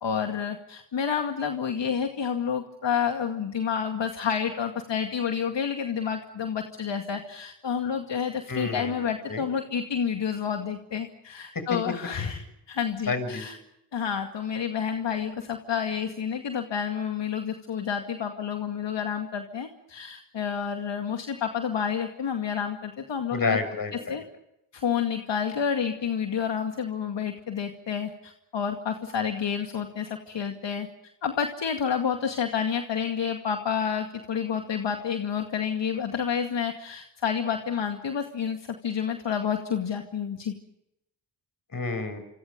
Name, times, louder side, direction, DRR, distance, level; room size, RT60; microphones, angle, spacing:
voice 1, 0.0-13.6 13.9-23.6 24.1-24.2 24.7-30.9 31.2-40.5, left 7 dB, 65° left, 4 dB, 2.3 m, -29 dB
voice 2, 8.5-9.0 9.3-9.4 11.5-11.8 13.1-13.4 23.3-24.1 41.7-42.2, left 3 dB, 45° left, 9 dB, 6.8 m, -29 dB
28.0 x 26.5 x 5.3 m, 0.84 s
cardioid pair, 55°, 46 cm